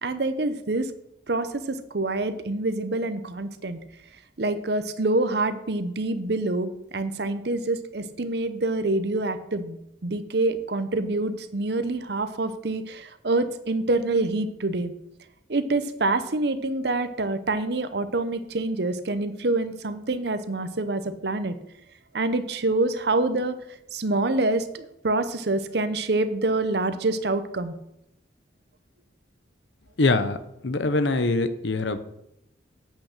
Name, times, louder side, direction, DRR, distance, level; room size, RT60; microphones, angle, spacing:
voice 1, 0.0-0.9 1.3-3.8 4.4-14.9 15.5-21.5 22.1-23.6 23.9-27.7, right 2 dB, 60° right, 11 dB, 0.8 m, -26 dB
voice 2, 30.0-30.4 30.6-32.0, left 3 dB, 75° left, 11 dB, 0.8 m, -23 dB
8.5 x 6.2 x 6.6 m, 0.80 s
head